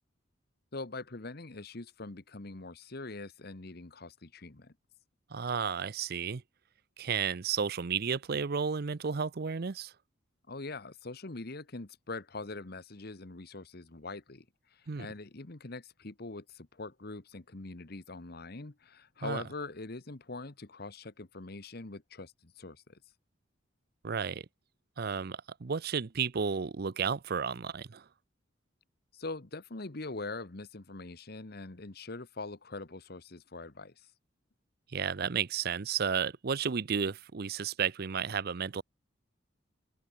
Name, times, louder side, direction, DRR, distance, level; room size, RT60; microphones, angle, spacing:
voice 1, 0.7-4.7 10.5-23.0 29.1-34.1, left 3 dB, 55° left, 1.3 m, -43 dB
voice 2, 5.3-6.4 7.0-9.9 14.9-15.1 19.2-19.4 24.0-24.5 25.0-28.0 34.9-38.8, right 6 dB, 55° right, 0.6 m, -32 dB
open air
head